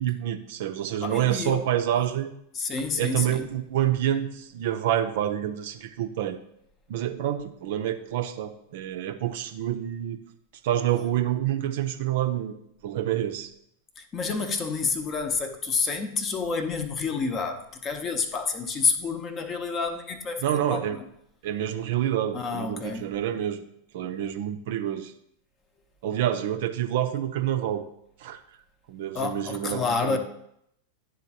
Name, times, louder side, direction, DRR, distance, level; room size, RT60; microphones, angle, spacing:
voice 1, 0.0-2.3 3.0-6.4 6.9-10.2 10.6-12.5 12.8-13.5 20.4-21.0 21.4-23.6 23.9-25.1 26.0-27.8 28.2-28.4 28.9-30.2, right 11 dB, 55° right, 0.5 m, -27 dB
voice 2, 1.0-1.6 2.5-3.5 14.0-21.0 22.3-23.1 29.1-30.2, left 4 dB, 25° left, 0.7 m, -29 dB
11.0 x 3.8 x 2.7 m
figure-of-eight pair, 90°, 0 cm